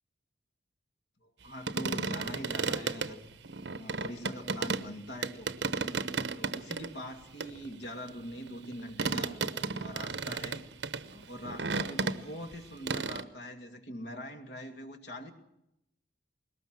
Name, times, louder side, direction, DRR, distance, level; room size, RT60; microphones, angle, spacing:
voice 1, 1.2-3.3 3.7-5.5 6.2-9.4 9.7-10.7 11.1-15.3, equal, 65° left, 6 dB, 2.3 m, -43 dB
sound 1, 1.7-4.9 5.2-6.9 7.4-12.5 12.9-13.2, right 4 dB, 70° right, 1.0 m, -33 dB
21.5 x 19.0 x 7.6 m, 0.83 s
head